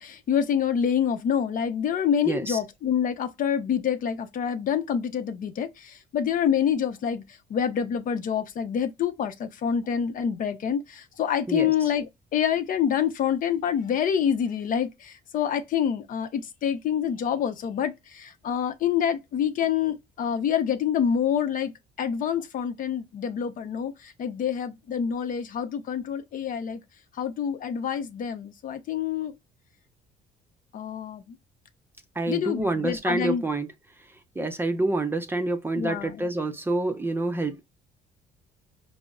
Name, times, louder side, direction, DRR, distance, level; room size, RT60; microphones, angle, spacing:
voice 1, 0.0-21.7 22.0-26.8 27.2-29.3 30.7-31.4 32.3-33.5 34.4-34.5 35.7-36.3, left 8 dB, 55° left, 0.6 m, -27 dB
voice 2, 2.3-2.6 11.5-11.7 32.2-33.7 34.4-37.6, right 2 dB, 15° right, 0.5 m, -27 dB
5.0 x 2.0 x 2.3 m
cardioid pair, 110°, 17 cm